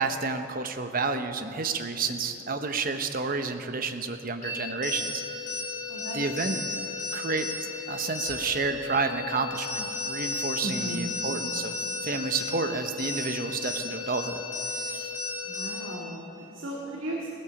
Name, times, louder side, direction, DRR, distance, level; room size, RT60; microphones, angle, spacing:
voice 1, 0.0-5.2 6.1-6.6 7.1-7.5 7.9-11.8 12.0-14.4 14.7-15.1, right 4 dB, 45° right, 8 dB, 0.8 m, -30 dB
sound 1, 4.4-16.0, left 3 dB, 40° left, 3.5 m, -34 dB
voice 2, 5.9-6.2 10.6-11.1 15.4-17.3, right 1 dB, 80° right, -4 dB, 2.0 m, -36 dB
16.5 x 9.9 x 7.0 m, 2.9 s
head